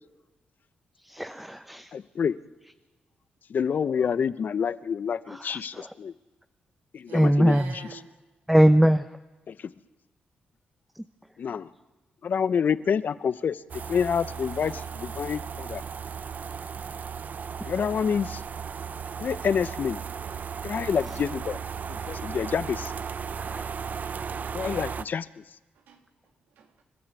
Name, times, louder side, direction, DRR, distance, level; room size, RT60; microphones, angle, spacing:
voice 1, 1.0-1.9 5.3-5.9 7.1-7.7 8.5-9.2 10.9-11.0 21.1-21.2 23.4-23.7, equal, 5° right, 0.8 m, -22 dB
voice 2, 1.9-2.4 3.5-6.1 6.9-7.6 9.5-9.6 11.4-11.7 12.2-13.6 13.9-15.8 17.6-18.4 19.2-20.0 20.6-21.6 21.9-22.9 24.5-25.4, left 7 dB, 65° left, 0.8 m, -27 dB
voice 3, 7.1-8.1 25.7-26.8, right 6 dB, 90° right, 2.5 m, -47 dB
sound 1, 13.7-25.0, right 6 dB, 55° right, 0.6 m, -36 dB
29.0 x 13.0 x 8.3 m
cardioid pair, 60°, 3 cm